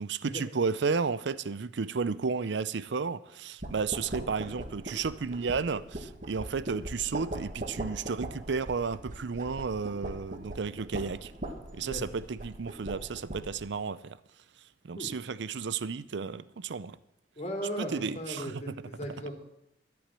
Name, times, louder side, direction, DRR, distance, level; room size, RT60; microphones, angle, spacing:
voice 1, 0.0-11.3 11.7-14.2 14.8-17.0 17.8-18.7, right 5 dB, 70° right, 0.5 m, -33 dB
sound 1, 3.6-13.7, right 1 dB, 45° right, 1.6 m, -40 dB
voice 2, 17.4-19.3, equal, 40° left, 2.8 m, -37 dB
13.0 x 8.6 x 7.5 m
head